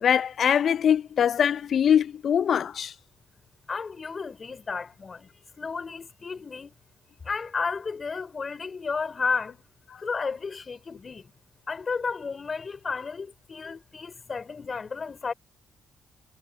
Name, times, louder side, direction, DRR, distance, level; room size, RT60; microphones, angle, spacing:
voice 1, 0.0-2.9, left 8 dB, 55° left, 0.5 m, -22 dB
voice 2, 3.7-6.7 7.2-9.6 10.0-11.3 11.7-15.3, left 5 dB, 40° left, 3.4 m, -32 dB
supercardioid pair, 65°, 0 cm